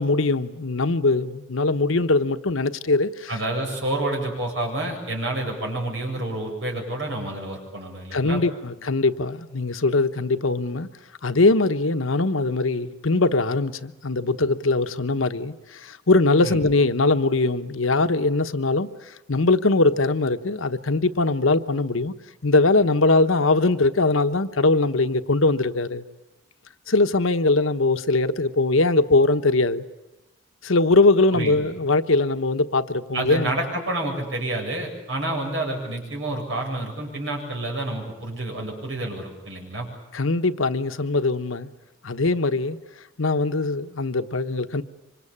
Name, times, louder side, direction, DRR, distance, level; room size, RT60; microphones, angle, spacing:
voice 1, 0.0-3.3 8.1-10.9 11.2-18.9 19.3-22.1 22.4-26.0 26.9-29.8 30.6-33.5 40.1-41.7 42.0-42.8 43.2-44.8, left 3 dB, 90° left, 10 dB, 1.1 m, -21 dB
voice 2, 3.3-8.4 16.4-16.6 31.3-31.6 33.1-39.9, right 1 dB, 65° right, 1 dB, 7.8 m, -29 dB
26.0 x 25.5 x 8.7 m, 0.98 s
head